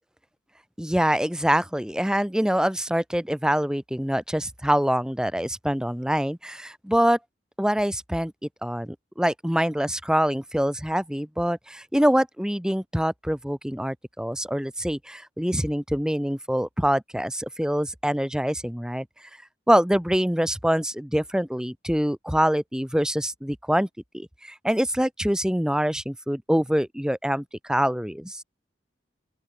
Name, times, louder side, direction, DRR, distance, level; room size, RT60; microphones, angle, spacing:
voice 1, 0.8-7.2 7.6-8.3 8.6-19.1 19.7-23.9 24.1-28.4, equal, 5° right, 1.3 m, -25 dB
open air
head